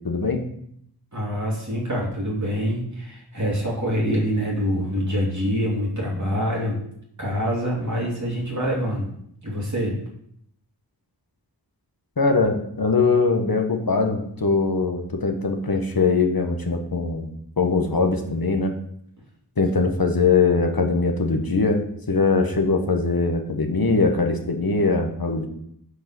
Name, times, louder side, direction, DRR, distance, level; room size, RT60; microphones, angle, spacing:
voice 1, 0.0-0.5 12.2-17.3 17.6-18.7 19.6-21.8 22.1-25.5, left 4 dB, 60° left, 3 dB, 1.3 m, -21 dB
voice 2, 1.1-6.8 7.2-9.1 9.4-10.0, equal, 45° right, -4 dB, 3.2 m, -25 dB
6.8 x 4.8 x 6.1 m, 0.69 s
wide cardioid pair, 65°, 40 cm